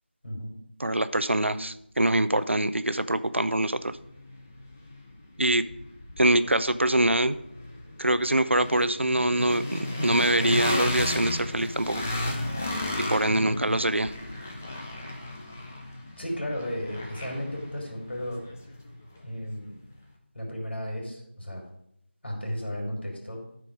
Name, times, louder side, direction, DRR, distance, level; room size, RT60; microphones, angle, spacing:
voice 1, 0.2-0.5 13.3-13.5 16.2-18.4 19.2-19.7 20.3-21.6 22.2-23.4, equal, 65° left, 0 dB, 3.6 m, -34 dB
voice 2, 0.8-4.0 5.4-5.6 6.2-7.3 8.0-12.0 13.1-14.1, right 1 dB, 80° right, 13 dB, 0.6 m, -24 dB
sound 1, 3.6-19.5, left 1 dB, 10° left, 0.4 m, -35 dB
12.5 x 4.6 x 5.1 m, 0.74 s
figure-of-eight pair, 170°, 6 cm